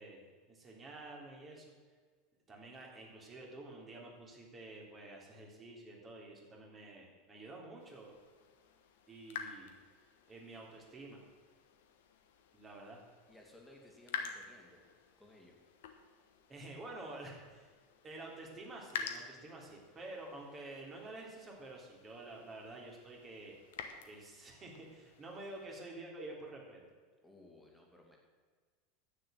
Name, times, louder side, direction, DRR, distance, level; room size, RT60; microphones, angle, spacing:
voice 1, 0.0-1.7 2.5-8.2 9.1-9.7 10.3-11.2 12.5-13.0 16.5-17.7 18.0-23.5 24.0-26.8, right 2 dB, 25° right, -1 dB, 3.4 m, -49 dB
sound 1, 7.8-25.7, left 7 dB, 60° left, 1.1 m, -50 dB
voice 2, 13.3-14.8 15.2-15.6 27.2-28.2, left 1 dB, 5° left, 0 dB, 2.7 m, -59 dB
10.5 x 9.0 x 7.6 m, 1.5 s
figure-of-eight pair, 80°, 0 cm